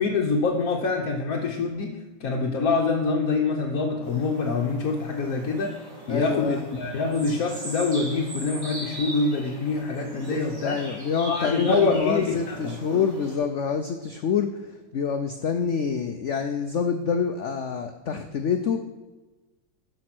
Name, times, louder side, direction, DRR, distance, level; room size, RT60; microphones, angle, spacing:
voice 1, 0.0-5.8 6.1-10.8 11.3-12.8, left 4 dB, 55° left, 0 dB, 1.2 m, -25 dB
sound 1, 4.0-13.3, right 1 dB, 45° right, 3.4 m, -39 dB
voice 2, 6.1-6.6 10.6-18.8, left 6 dB, 90° left, 7 dB, 0.6 m, -27 dB
12.5 x 5.3 x 6.0 m, 1.2 s
omnidirectional pair, 2.1 m